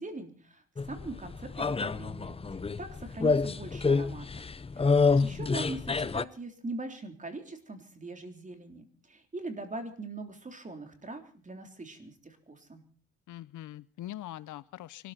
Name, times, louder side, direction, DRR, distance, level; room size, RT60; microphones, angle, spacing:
voice 1, 0.0-4.4 4.8-12.8, right 2 dB, 25° right, 6 dB, 3.6 m, -42 dB
sound 1, 0.8-6.2, left 4 dB, 20° left, 0.7 m, -28 dB
voice 2, 4.9-5.4 13.3-15.1, left 14 dB, 75° left, 19 dB, 0.8 m, -43 dB
24.5 x 13.5 x 4.3 m, 0.42 s
cardioid pair, 90°, 30 cm